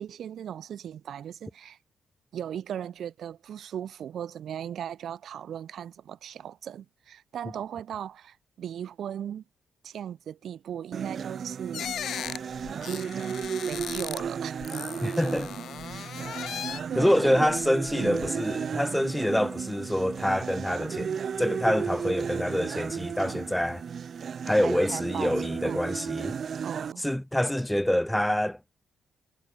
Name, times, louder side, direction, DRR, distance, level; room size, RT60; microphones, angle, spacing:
voice 1, 0.0-1.8 2.3-9.4 9.8-12.2 12.7-14.6 16.9-17.5 18.0-18.3 24.6-25.8 26.6-27.0, right 9 dB, 70° right, 2.5 m, -38 dB
sound 1, 10.9-26.9, right 7 dB, 55° right, 0.8 m, -34 dB
sound 2, 11.7-14.3 14.6-17.0 17.5-18.3, left 9 dB, 70° left, 0.7 m, -37 dB
voice 2, 15.0-15.5 16.9-23.8 24.5-26.4 27.0-28.6, left 1 dB, 5° left, 0.3 m, -26 dB
cardioid pair, 80°, 0 cm